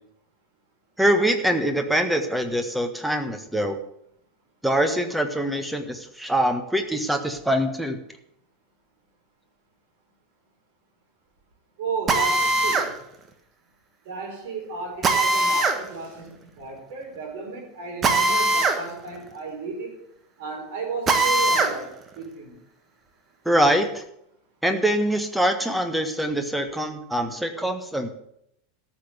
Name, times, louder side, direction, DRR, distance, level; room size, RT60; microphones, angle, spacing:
voice 1, 1.0-3.8 4.6-8.0 23.4-24.0 24.6-28.1, right 1 dB, 5° right, 7 dB, 1.5 m, -24 dB
voice 2, 11.8-12.9 14.1-19.9 20.4-22.6, right 4 dB, 55° right, 1 dB, 4.4 m, -34 dB
Drill, 12.1-12.9 15.0-15.8 18.0-18.8 19.2-19.3 21.1-21.7, right 2 dB, 25° right, 1.5 m, -21 dB
13.5 x 6.2 x 8.1 m, 0.75 s
figure-of-eight pair, 80°, 0 cm